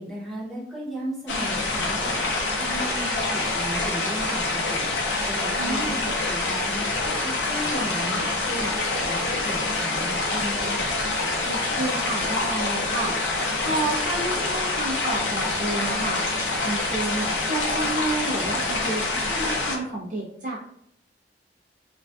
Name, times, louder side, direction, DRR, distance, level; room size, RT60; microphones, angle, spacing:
voice 1, 0.0-4.9 5.3-11.0, right 1 dB, ahead, -6 dB, 0.8 m, -35 dB
sound 1, 1.3-19.8, left 2 dB, 85° left, 0.5 m, -26 dB
voice 2, 5.6-6.0 11.4-13.1 13.6-16.2 16.6-20.6, right 2 dB, 45° right, -5 dB, 0.5 m, -30 dB
2.5 x 2.2 x 2.3 m, 0.72 s
head